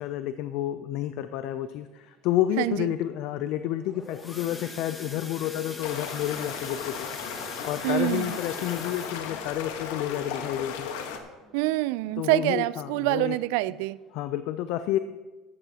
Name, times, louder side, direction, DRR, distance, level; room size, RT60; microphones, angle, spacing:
voice 1, 0.0-7.4 7.7-10.9 12.2-13.4 14.1-15.0, left 12 dB, 60° left, 11 dB, 0.4 m, -30 dB
voice 2, 2.6-2.9 7.8-8.4 11.5-14.0, right 18 dB, 75° right, 19 dB, 0.3 m, -26 dB
sound 1, 3.7-12.3 12.8-13.0 13.3-13.4 13.9-14.0, left 2 dB, 15° left, 1.4 m, -43 dB
sound 2, 5.8-11.2, left 7 dB, 90° left, 1.2 m, -36 dB
14.5 x 11.5 x 2.9 m, 1.2 s
cardioid pair, 145°, 0 cm